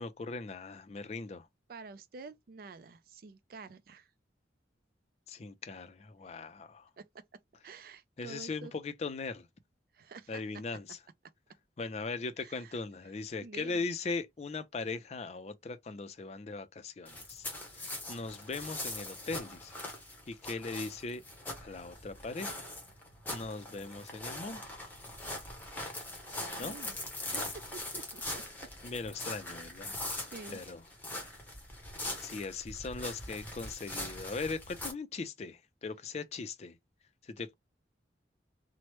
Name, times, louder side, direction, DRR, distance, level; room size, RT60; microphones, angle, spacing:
voice 1, 0.0-1.5 5.3-6.9 8.2-9.5 10.3-11.0 11.8-19.7 20.3-21.2 21.6-22.6 23.3-24.8 26.6-26.7 28.8-30.0 30.5-30.8 32.2-36.8 37.2-37.5, left 4 dB, 35° left, 0.4 m, -39 dB
voice 2, 1.7-4.1 7.0-7.1 7.6-8.7 9.9-10.4 12.4-12.8 13.4-13.8 26.4-27.0 27.3-27.4 27.9-28.4 30.2-30.6, right 4 dB, 55° right, 0.4 m, -48 dB
sound 1, 17.1-34.9, left 1 dB, 10° left, 0.8 m, -42 dB
3.0 x 2.1 x 3.0 m
head